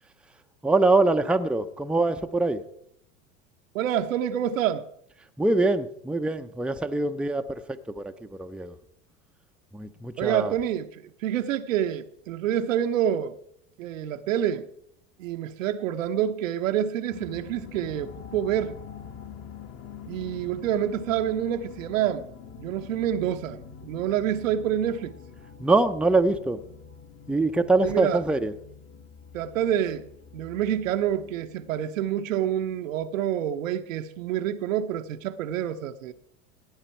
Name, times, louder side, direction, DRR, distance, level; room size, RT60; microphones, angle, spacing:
voice 1, 0.6-2.6 5.4-7.6 7.9-8.8 9.7-10.5 25.6-26.6 27.3-28.5, right 2 dB, 5° right, 0.7 m, -24 dB
voice 2, 3.7-4.8 10.2-10.9 11.2-13.3 13.8-14.7 15.2-18.8 20.1-22.2 22.6-25.1 27.8-28.2 29.3-30.0 30.3-36.1, right 10 dB, 75° right, 1.0 m, -27 dB
sound 1, 17.1-32.5, left 7 dB, 30° left, 1.4 m, -45 dB
16.5 x 9.1 x 4.4 m
hypercardioid pair, 90°, 39 cm